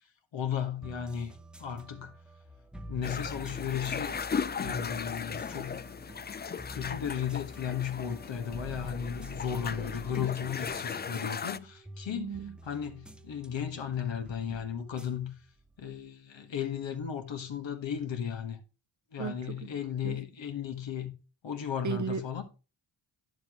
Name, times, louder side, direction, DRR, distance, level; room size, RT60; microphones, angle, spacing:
voice 1, 0.3-2.1 2.9-4.1 4.4-5.9 6.7-12.4 12.6-15.3 15.8-18.6 19.1-21.1 21.4-22.4, left 8 dB, 65° left, 1.5 m, -35 dB
sound 1, 0.8-16.1, equal, ahead, 0.8 m, -47 dB
sound 2, 3.0-11.6, left 6 dB, 25° left, 0.4 m, -37 dB
voice 2, 12.2-12.6 19.2-19.4 20.0-20.2 21.8-22.4, right 7 dB, 40° right, 0.6 m, -35 dB
9.6 x 7.2 x 3.0 m
cardioid pair, 65°, 47 cm